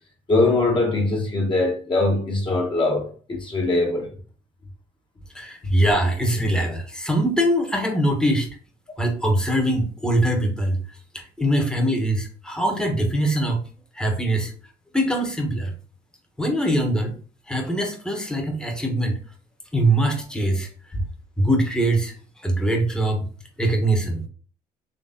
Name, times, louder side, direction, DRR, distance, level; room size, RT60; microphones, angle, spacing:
voice 1, 0.3-4.1, left 2 dB, 30° left, 1.3 m, -22 dB
voice 2, 5.3-8.5 9.0-13.6 13.9-14.6 14.9-15.7 16.4-17.2 17.5-19.2 19.7-21.0 21.4-23.3 23.6-24.3, right 1 dB, 5° left, 1.2 m, -22 dB
4.0 x 3.2 x 3.7 m
cardioid pair, 110°, 17 cm